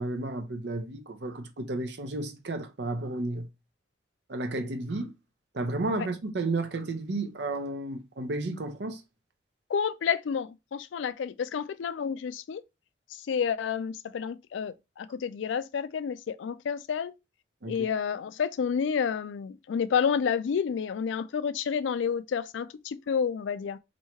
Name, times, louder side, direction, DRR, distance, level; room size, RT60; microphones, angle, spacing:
voice 1, 0.0-3.5 4.3-5.1 5.5-9.0 17.6-17.9, right 2 dB, 70° right, 0.7 m, -32 dB
voice 2, 9.7-12.6 13.1-17.1 17.7-23.8, left 7 dB, 85° left, 0.3 m, -30 dB
3.0 x 2.7 x 4.4 m
head